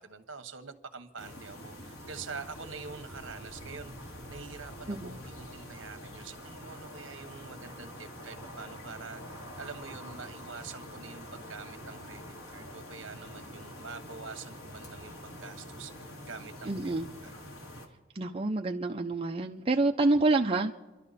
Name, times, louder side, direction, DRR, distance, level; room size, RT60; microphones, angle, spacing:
voice 1, 0.0-12.2 12.5-16.9 17.2-17.4, right 5 dB, 65° right, 9 dB, 1.3 m, -46 dB
sound 1, 1.2-17.9, equal, 85° left, 2.2 m, -45 dB
voice 2, 4.9-5.2 16.7-17.2 18.1-20.7, right 2 dB, 25° right, 2 dB, 0.5 m, -28 dB
28.5 x 12.0 x 4.2 m, 1.2 s
head